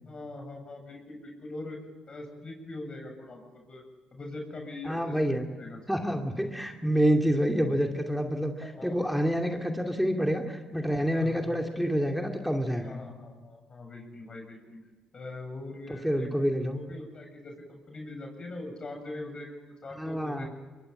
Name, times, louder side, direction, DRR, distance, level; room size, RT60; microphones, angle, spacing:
voice 1, 0.1-1.8 2.1-3.8 4.1-5.8 8.6-9.0 11.1-11.6 12.8-14.8 15.1-16.3 16.6-20.5, left 2 dB, 40° left, 3 dB, 7.7 m, -42 dB
voice 2, 4.8-5.5 5.9-13.0 15.9-16.8 20.0-20.5, equal, ahead, 3 dB, 2.6 m, -28 dB
23.5 x 21.5 x 8.9 m, 1.3 s
supercardioid pair, 60°, 2 cm